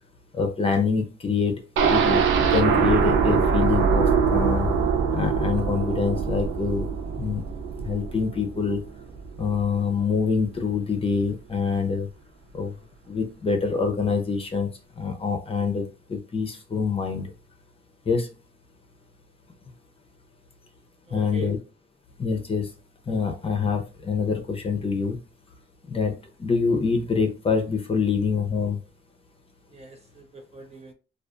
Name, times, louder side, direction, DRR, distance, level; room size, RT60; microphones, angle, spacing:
voice 1, 0.3-1.6 1.9-4.7 5.1-6.9 7.2-7.4 7.8-8.8 9.4-12.1 12.5-12.7 13.1-14.7 15.0-17.3 18.1-18.3 21.1-21.6 22.2-22.7 23.1-25.2 25.8-28.8, left 5 dB, 30° left, 0.6 m, -25 dB
sound 1, 1.8-9.6 10.0-10.1 10.4-10.5, right 6 dB, 80° right, 0.5 m, -23 dB
voice 2, 21.1-21.5 29.7-30.9, right 2 dB, 35° right, 0.5 m, -42 dB
2.4 x 2.4 x 2.4 m
cardioid pair, 90°, 20 cm